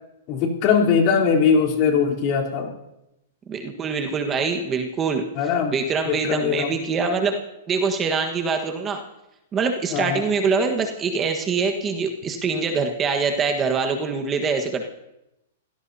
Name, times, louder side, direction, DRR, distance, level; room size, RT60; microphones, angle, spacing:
voice 1, 0.3-2.7 5.3-5.7 6.0-6.7 9.9-10.2, left 6 dB, 40° left, -1 dB, 3.7 m, -20 dB
voice 2, 3.5-5.2 5.7-7.4 7.7-9.0 9.5-14.8, right 5 dB, 20° right, 4 dB, 1.4 m, -24 dB
27.0 x 16.5 x 2.8 m, 0.90 s
hypercardioid pair, 145°, 0 cm